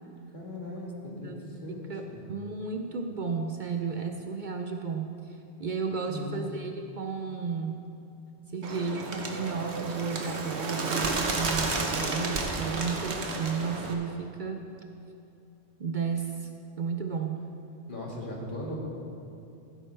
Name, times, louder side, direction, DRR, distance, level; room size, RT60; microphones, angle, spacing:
voice 1, 0.3-2.2 6.1-6.4 17.9-18.8, left 1 dB, 50° left, -3 dB, 2.0 m, -38 dB
voice 2, 1.2-7.8 8.5-14.7 15.8-16.5 16.8-17.4, right 5 dB, 55° right, 4 dB, 0.7 m, -33 dB
Bird, 8.6-13.9, right 3 dB, 90° right, 1.3 m, -32 dB
15.5 x 8.9 x 3.3 m, 2.7 s
omnidirectional pair, 1.1 m